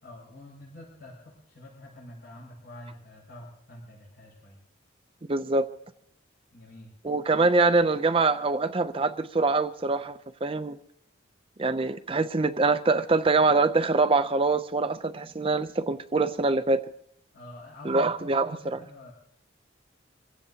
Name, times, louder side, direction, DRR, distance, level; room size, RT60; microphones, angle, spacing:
voice 1, 0.0-4.6 6.5-6.9 17.3-18.0 18.3-19.1, left 1 dB, 60° left, -6 dB, 5.9 m, -47 dB
voice 2, 5.3-5.7 7.0-10.8 11.6-16.8 17.9-18.8, right 3 dB, 30° right, 10 dB, 0.5 m, -24 dB
26.0 x 16.0 x 2.8 m, 0.71 s
head